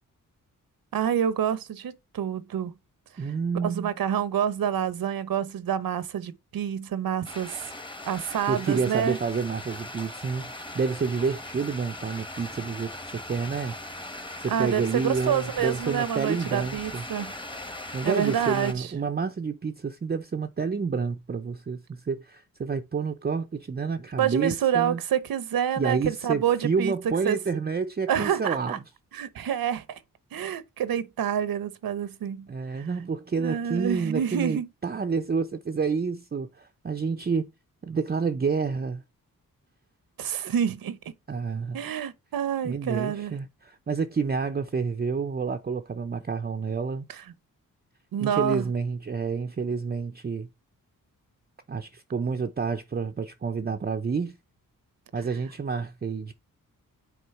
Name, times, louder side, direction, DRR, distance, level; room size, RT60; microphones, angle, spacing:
voice 1, 0.9-2.7 3.6-7.7 8.1-9.2 14.5-17.3 18.0-18.9 24.2-26.9 27.2-27.4 28.1-28.8 29.1-30.0 30.3-32.5 32.8-32.9 33.4-34.7 40.2-41.0 41.7-43.3 47.1-47.2 48.1-48.7, right 9 dB, 80° right, 0.9 m, -27 dB
voice 2, 3.2-3.9 8.3-13.8 14.4-17.1 17.9-25.0 25.8-28.8 32.5-37.5 37.8-39.0 41.3-41.8 42.6-47.1 48.2-50.5 51.7-54.4 55.1-56.3, right 5 dB, 30° right, 0.6 m, -29 dB
sound 1, 7.3-18.7, left 1 dB, 15° left, 1.2 m, -39 dB
6.9 x 4.3 x 4.3 m
wide cardioid pair, 100°, 34 cm